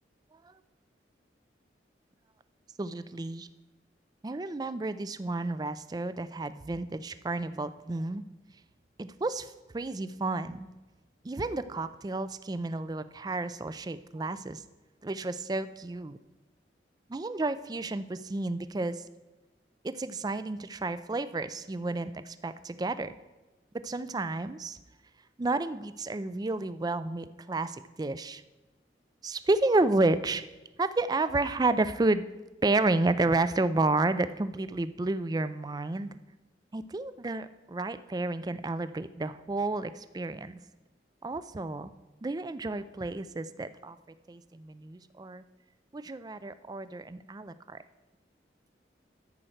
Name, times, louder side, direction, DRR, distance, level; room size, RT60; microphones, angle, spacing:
voice 1, 2.8-3.5 4.2-8.2 9.0-10.7 11.2-14.6 15.0-16.2 17.1-19.0 19.8-23.1 23.8-24.8 25.4-28.4 29.2-30.4 30.8-32.2 32.6-36.1 36.7-40.6 41.2-41.9 42.2-44.0 44.3-45.4 45.9-47.8, right 2 dB, 20° right, 13 dB, 0.4 m, -31 dB
13.0 x 4.5 x 6.4 m, 1.1 s
head